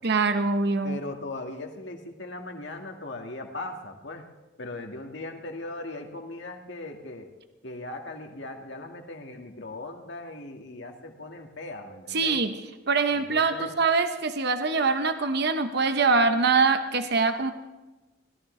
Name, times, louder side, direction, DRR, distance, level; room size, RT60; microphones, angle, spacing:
voice 1, 0.0-1.0 12.1-17.5, right 4 dB, 60° right, 8 dB, 0.9 m, -24 dB
voice 2, 0.8-4.2 4.6-7.3 7.6-12.4 13.1-13.7, left 2 dB, 65° left, 3 dB, 1.9 m, -39 dB
23.5 x 17.5 x 3.3 m, 1.1 s
head